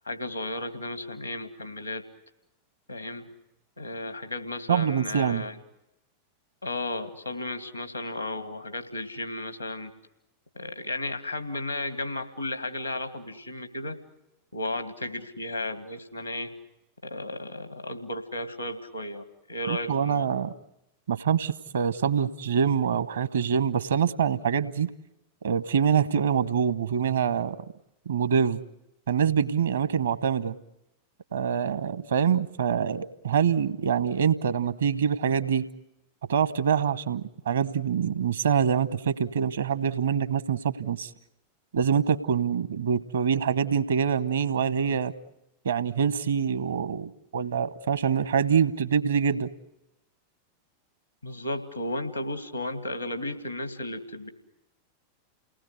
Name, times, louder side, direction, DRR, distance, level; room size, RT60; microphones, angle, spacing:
voice 1, 0.1-2.0 2.9-3.3 3.8-5.6 6.6-9.9 10.6-14.0 14.5-16.5 17.0-20.4 51.2-54.3, left 1 dB, 85° left, 8 dB, 2.2 m, -34 dB
voice 2, 4.7-5.4 19.7-20.5 21.1-24.9 25.4-27.6 28.1-28.6 29.1-30.6 31.3-35.7 36.3-41.1 41.7-45.1 45.6-49.5, right 7 dB, 65° right, 15 dB, 1.1 m, -25 dB
29.5 x 19.0 x 8.2 m, 0.89 s
figure-of-eight pair, 90°, 0 cm